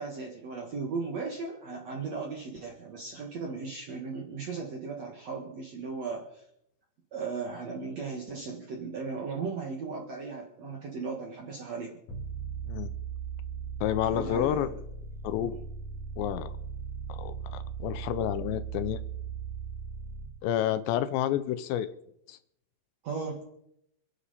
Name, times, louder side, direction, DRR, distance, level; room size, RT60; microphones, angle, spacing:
voice 1, 0.0-6.4 7.1-12.0 14.1-14.7 15.4-15.6 23.0-23.4, right 4 dB, 55° right, 1 dB, 1.9 m, -37 dB
sound 1, 12.1-20.3, right 6 dB, 45° left, 3.8 m, -38 dB
voice 2, 13.8-14.8 15.2-15.5 16.2-16.5 17.1-19.0 20.4-21.9 22.3-22.4, left 11 dB, 80° left, 13 dB, 2.8 m, -29 dB
28.0 x 10.0 x 4.2 m, 0.76 s
omnidirectional pair, 5.3 m